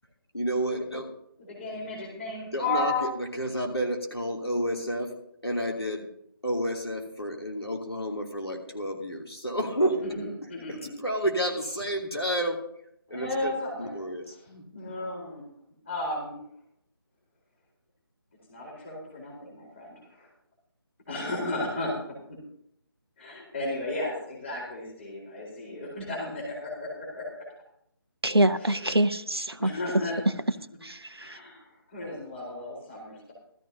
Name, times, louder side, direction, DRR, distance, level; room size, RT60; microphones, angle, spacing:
voice 1, 0.3-1.0 2.5-5.1 5.4-6.0 6.4-10.0 11.0-12.6 13.1-13.5 13.8-15.0, equal, 85° left, 0 dB, 2.9 m, -30 dB
voice 2, 1.5-3.2 10.0-10.9 13.1-14.0 14.7-15.5 15.9-16.4 18.5-20.3 21.1-21.9 23.2-27.4 28.6-28.9 29.6-30.2 31.2-33.3, left 2 dB, 30° left, -3 dB, 4.1 m, -34 dB
voice 3, 28.2-29.7 30.8-31.4, right 1 dB, 80° right, 11 dB, 0.8 m, -25 dB
17.0 x 13.5 x 2.8 m, 0.71 s
figure-of-eight pair, 155°, 13 cm